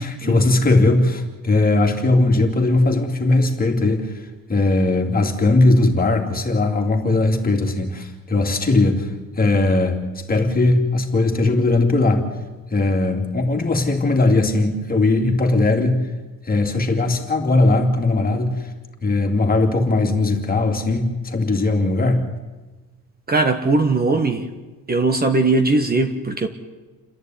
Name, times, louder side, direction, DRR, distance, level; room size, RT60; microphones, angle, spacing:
voice 1, 0.0-12.3 12.7-16.0 16.4-18.7 19.0-22.2, left 2 dB, 25° left, 3 dB, 3.0 m, -19 dB
voice 2, 23.3-24.5 24.9-26.5, right 3 dB, 25° right, 7 dB, 1.5 m, -19 dB
29.5 x 11.0 x 9.5 m, 1.2 s
cardioid pair, 120°, 35 cm